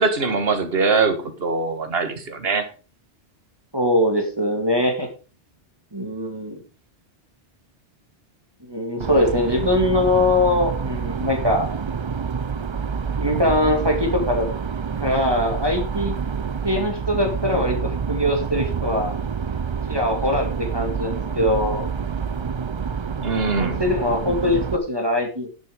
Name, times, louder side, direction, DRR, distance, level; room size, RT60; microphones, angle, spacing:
voice 1, 0.0-2.7 23.2-23.8, right 4 dB, 60° right, 8 dB, 1.7 m, -22 dB
voice 2, 3.7-5.1 5.9-6.6 8.7-11.7 13.2-14.5 15.0-16.1 16.6-19.1 19.9-21.9 23.6-25.5, left 1 dB, 20° right, 2 dB, 2.2 m, -22 dB
sound 1, 9.0-24.8, right 6 dB, 35° right, 0.4 m, -27 dB
10.5 x 8.0 x 5.1 m, 0.34 s
omnidirectional pair, 1.1 m